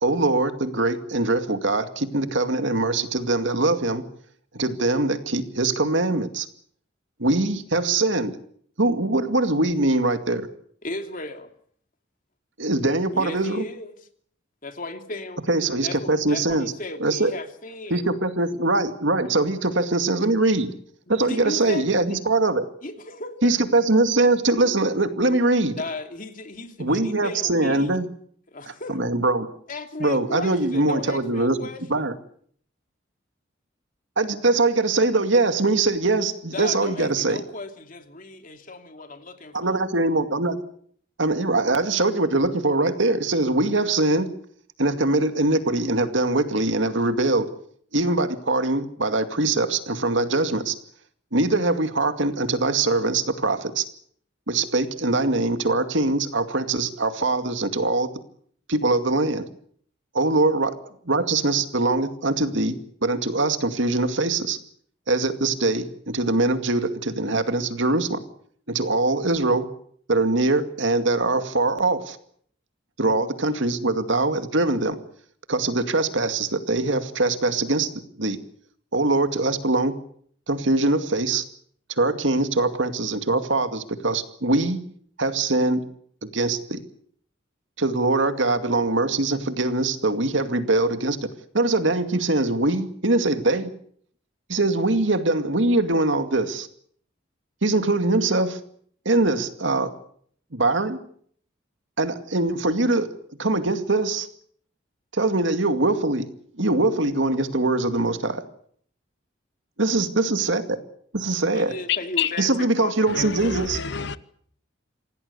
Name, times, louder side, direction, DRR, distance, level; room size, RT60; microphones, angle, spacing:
voice 1, 0.0-4.0 4.5-6.5 7.2-8.3 8.8-10.5 12.6-13.6 15.5-16.7 17.0-17.3 17.9-20.7 21.1-22.6 23.4-25.8 26.8-28.1 28.7-29.5 30.0-31.6 31.9-32.1 34.2-37.4 39.5-40.6 41.2-44.3 44.8-47.5 47.9-50.7 51.3-53.8 54.5-58.1 58.7-59.5 60.1-60.7 61.1-64.6 65.1-68.2 68.7-69.7 70.1-72.2 73.0-75.0 75.5-77.9 78.2-78.4 78.9-79.9 80.5-81.4 82.0-84.8 85.2-85.8 86.2-86.8 87.8-91.3 91.5-93.7 94.5-96.7 97.6-98.6 99.1-99.9 100.5-101.0 102.0-103.1 103.4-104.3 105.1-106.3 106.6-108.4 109.8-110.8 111.1-111.7 112.4-113.8, right 2 dB, 70° right, 2.3 m, -22 dB
voice 2, 10.8-11.5 13.1-13.9 14.6-15.4 15.8-18.0 19.2-19.3 21.1-22.2 22.8-23.5 25.8-28.0 28.5-29.0 29.7-32.1 36.5-39.8 111.5-113.3, left 2 dB, 45° left, 2.9 m, -36 dB
voice 3, 111.9-112.3 113.1-114.2, left 8 dB, 60° left, 1.0 m, -27 dB
26.5 x 17.5 x 8.3 m
head